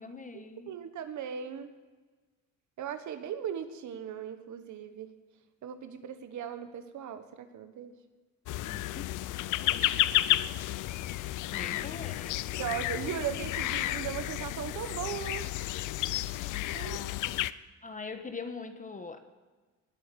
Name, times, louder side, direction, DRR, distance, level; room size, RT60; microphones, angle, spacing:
voice 1, 0.0-0.7 8.6-9.2 9.6-9.8 11.1-12.4 17.8-19.2, left 4 dB, 25° left, 8 dB, 1.2 m, -43 dB
voice 2, 0.7-1.7 2.8-5.1 5.6-7.9 12.6-15.5 16.7-17.0, right 9 dB, 70° right, 9 dB, 1.3 m, -38 dB
sound 1, 8.5-17.5, left 15 dB, 85° left, 0.6 m, -32 dB
19.0 x 8.6 x 7.0 m, 1.4 s
cardioid pair, 90°, 30 cm